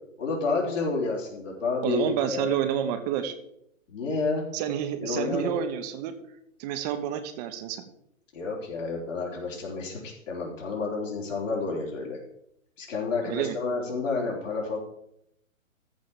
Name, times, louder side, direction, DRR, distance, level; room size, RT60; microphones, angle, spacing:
voice 1, 0.2-2.5 3.9-4.4 5.0-5.5 8.3-12.2 12.8-14.8, left 4 dB, 65° left, -3 dB, 4.1 m, -30 dB
voice 2, 1.8-3.3 4.5-6.1 6.6-7.8 13.3-13.6, right 9 dB, 30° right, 9 dB, 1.2 m, -29 dB
14.0 x 5.1 x 7.2 m, 0.76 s
figure-of-eight pair, 125°, 40 cm